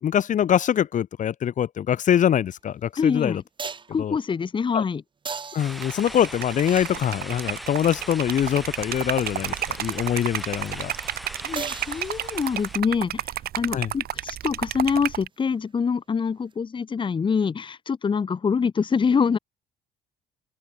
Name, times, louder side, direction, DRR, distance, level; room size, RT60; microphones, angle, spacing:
voice 1, 0.0-3.4 4.0-4.2 4.7-4.8 5.5-10.9 13.7-13.9, left 9 dB, 50° left, 1.4 m, -24 dB
sound 1, 2.5-2.6 3.6-4.0 5.2-7.4 11.6-12.7 16.5-16.6, right 5 dB, 30° right, 1.9 m, -38 dB
voice 2, 3.0-3.4 3.9-5.0 11.4-13.3 13.6-19.4, left 6 dB, 30° left, 1.4 m, -25 dB
sound 2, 5.6-12.8, equal, ahead, 2.7 m, -40 dB
Liquid, 5.7-15.3, right 12 dB, 65° right, 2.9 m, -32 dB
open air
cardioid pair, 110°, 17 cm